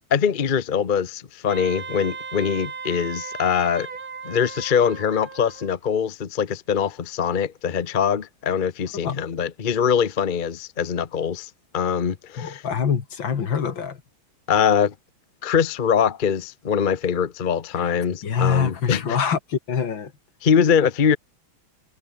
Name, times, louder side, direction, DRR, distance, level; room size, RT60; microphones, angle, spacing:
voice 1, 0.1-3.9 4.2-12.6 14.5-14.9 15.4-19.2 20.4-21.2, left 7 dB, 40° left, 0.7 m, -23 dB
Wind instrument woodwind instrument, 1.5-5.7, right 5 dB, 45° right, 2.6 m, -36 dB
voice 2, 12.4-14.0 17.8-17.9 18.2-20.1, left 7 dB, 70° left, 2.8 m, -25 dB
omnidirectional pair, 2.2 m